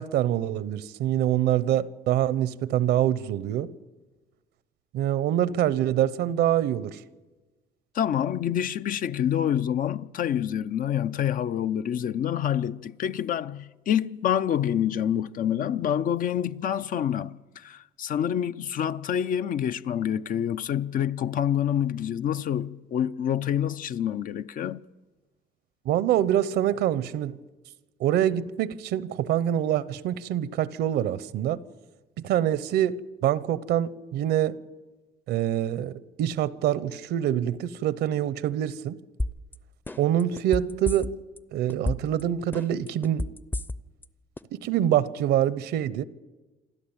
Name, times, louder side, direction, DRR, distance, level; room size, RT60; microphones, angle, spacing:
voice 1, 0.0-3.7 4.9-7.0 25.8-27.4 28.0-31.6 32.2-34.5 35.3-39.0 40.0-41.1 41.5-43.3 44.5-46.0, right 11 dB, 80° right, 0.9 m, -25 dB
voice 2, 7.9-24.8, left 9 dB, 55° left, 0.6 m, -27 dB
sound 1, 39.2-39.5 39.9-41.4 41.7-42.2 42.5-44.0 44.4-44.5, left 1 dB, 10° left, 0.7 m, -30 dB
27.5 x 13.0 x 8.9 m
cardioid pair, 110°, 17 cm